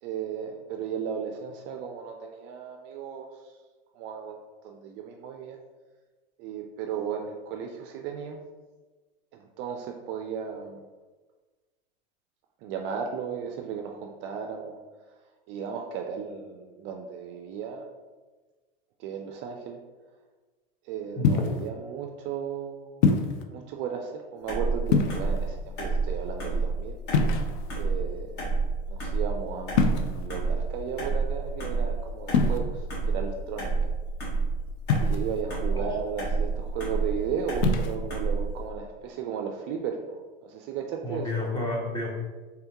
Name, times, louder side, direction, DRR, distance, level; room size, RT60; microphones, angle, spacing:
voice 1, 0.0-3.6 3.9-4.4 4.6-5.6 6.4-8.4 9.3-10.8 12.6-14.8 15.5-17.9 19.0-19.8 20.8-23.1 23.5-27.0 27.8-28.4 28.9-33.7 35.0-41.3, right 7 dB, 40° right, 3 dB, 0.4 m, -35 dB
sound 1, 21.2-21.7 23.0-23.4 24.9-25.5 27.1-27.8 29.7-30.3 32.3-32.6 34.9-35.4 37.5-38.0, left 5 dB, 55° left, 0.5 m, -24 dB
voice 2, 21.2-21.5 35.7-36.0 41.0-42.2, left 2 dB, 15° left, -2 dB, 0.9 m, -31 dB
sound 2, 24.5-38.6, right 4 dB, 35° left, 1.3 m, -29 dB
3.5 x 3.4 x 2.9 m, 1.3 s
hypercardioid pair, 115°, 29 cm